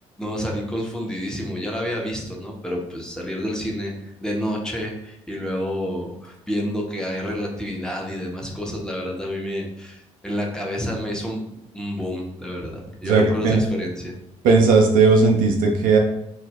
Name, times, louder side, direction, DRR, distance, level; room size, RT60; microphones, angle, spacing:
voice 1, 0.2-14.1, equal, 5° left, -1 dB, 0.7 m, -29 dB
voice 2, 13.0-13.6 14.4-16.0, right 4 dB, 60° right, 2 dB, 0.5 m, -16 dB
2.2 x 2.0 x 3.4 m, 0.80 s
figure-of-eight pair, 50°, 16 cm